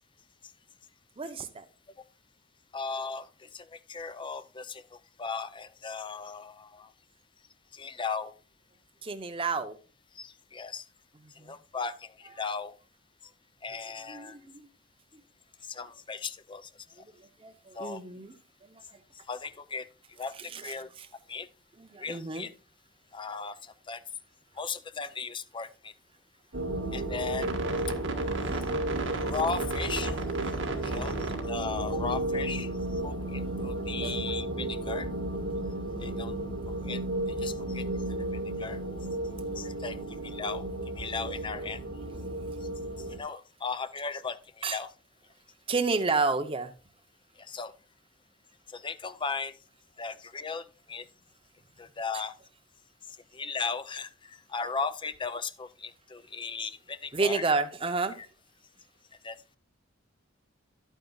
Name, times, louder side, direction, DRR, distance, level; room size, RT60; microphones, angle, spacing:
voice 1, 1.2-1.7 9.0-9.8 11.4-11.5 14.1-14.7 17.2-18.3 18.7-19.0 20.5-21.1 21.8-22.5 28.8-29.3 34.0-34.3 44.6-44.8 45.7-46.7 57.1-58.2, right 4 dB, 30° right, 7 dB, 0.7 m, -31 dB
voice 2, 2.7-6.9 7.7-8.3 10.1-10.8 11.4-12.8 13.6-14.4 15.7-16.7 17.0-17.1 17.7-18.0 19.3-20.9 21.3-21.5 22.0-22.5 23.1-24.0 24.6-25.9 26.9-27.5 29.2-30.2 30.8-32.7 33.0-35.1 36.0-36.3 36.7-37.0 37.4-37.8 38.6-38.8 39.6-40.0 40.2-40.7 41.0-41.8 43.1-44.9 47.4-47.7 48.7-49.5 50.0-51.0 51.8-52.3 53.3-57.4 59.2-59.4, left 5 dB, 25° left, 13 dB, 0.5 m, -37 dB
sound 1, 26.5-43.2, right 2 dB, 65° right, 1.5 m, -33 dB
10.5 x 9.1 x 2.4 m, 0.34 s
head